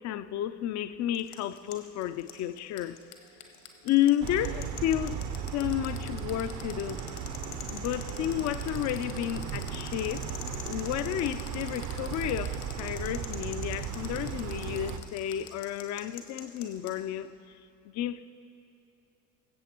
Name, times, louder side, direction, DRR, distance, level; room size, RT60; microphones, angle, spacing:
voice 1, 0.0-3.0 3.8-5.2 5.5-7.0 7.7-10.3 10.7-17.3 17.9-18.2, left 12 dB, 40° left, 0.4 m, -31 dB
sound 1, 1.1-16.9, left 10 dB, 75° left, 1.4 m, -44 dB
sound 2, 3.0-8.2, right 4 dB, 75° right, 2.1 m, -63 dB
sound 3, 4.2-15.0, right 7 dB, 40° right, 0.6 m, -36 dB
21.5 x 8.0 x 2.9 m
hypercardioid pair, 65°, 48 cm